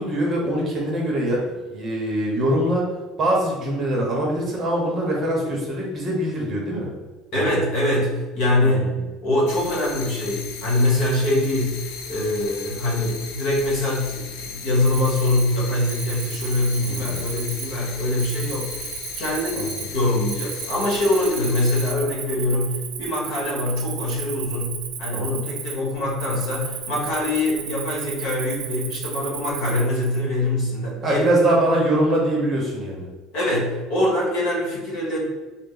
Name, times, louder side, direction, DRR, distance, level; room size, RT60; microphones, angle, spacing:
voice 1, 0.0-1.4 1.7-2.8 3.2-6.9 7.3-7.5 8.6-9.0 16.8-17.2 19.5-19.9 25.2-25.5 31.0-33.1, right 1 dB, 25° right, -3 dB, 0.8 m, -23 dB
voice 2, 7.3-8.9 9.2-18.9 19.1-31.2 33.3-35.2, left 1 dB, 60° left, -4 dB, 1.3 m, -23 dB
sound 1, 9.5-21.9, left 6 dB, 90° left, 0.5 m, -37 dB
Cricket, 14.8-30.2, right 8 dB, 75° right, 0.5 m, -35 dB
3.9 x 2.0 x 3.9 m, 1.2 s
cardioid pair, 175°, 0 cm